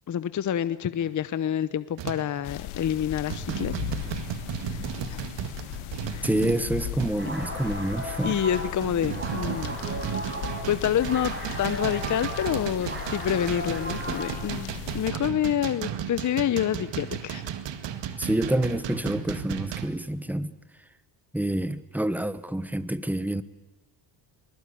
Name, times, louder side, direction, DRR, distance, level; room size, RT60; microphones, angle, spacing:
voice 1, 0.1-3.7 4.7-4.8 5.1-5.2 6.1-6.4 8.2-9.8 10.2-10.4 10.7-17.4, left 10 dB, 35° left, 14 dB, 0.9 m, -28 dB
sound 1, 1.0-1.2 2.0-2.4 2.8-3.0 3.3-7.4 8.0-19.9, right 9 dB, 60° right, 2.1 m, -35 dB
sound 2, 2.4-15.1, left 13 dB, 80° left, 1.7 m, -38 dB
voice 2, 6.2-8.4 18.2-20.5 21.3-23.4, right 1 dB, 5° right, 15 dB, 1.1 m, -27 dB
sound 3, 7.1-14.6, right 1 dB, 25° right, 6.7 m, -37 dB
23.5 x 21.0 x 8.5 m, 1.1 s
cardioid pair, 105°, 49 cm